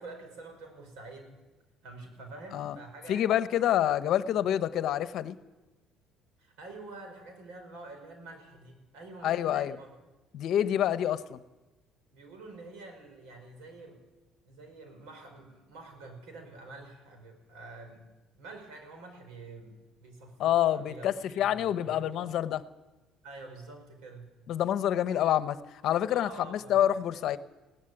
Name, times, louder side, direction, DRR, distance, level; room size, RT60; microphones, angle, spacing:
voice 1, 0.0-1.4 1.8-3.3 4.1-4.2 6.4-9.9 12.1-14.0 14.4-18.0 18.3-22.3 23.2-24.3 26.1-27.4, right 2 dB, 90° right, 5 dB, 5.6 m, -47 dB
voice 2, 3.1-5.4 9.2-9.8 10.3-11.4 20.4-22.6 24.5-25.6 25.8-27.4, left 11 dB, 60° left, 13 dB, 0.9 m, -27 dB
17.0 x 15.5 x 9.8 m, 1.1 s
cardioid pair, 135°, 0 cm